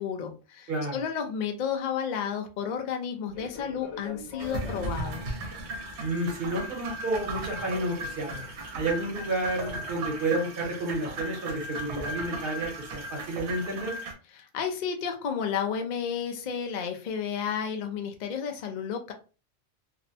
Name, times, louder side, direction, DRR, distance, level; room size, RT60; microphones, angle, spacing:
voice 1, 0.0-5.4 14.3-19.1, left 7 dB, 55° left, 5 dB, 0.5 m, -32 dB
voice 2, 0.7-1.0 6.0-8.4 8.7-13.9, right 2 dB, 55° right, 0 dB, 1.1 m, -30 dB
Fixed-wing aircraft airplane, 3.3-9.7, left 3 dB, 85° left, 1.0 m, -46 dB
sound 1, 4.4-14.1, right 2 dB, 75° right, 0.9 m, -36 dB
2.6 x 2.1 x 2.6 m, 0.33 s
omnidirectional pair, 1.2 m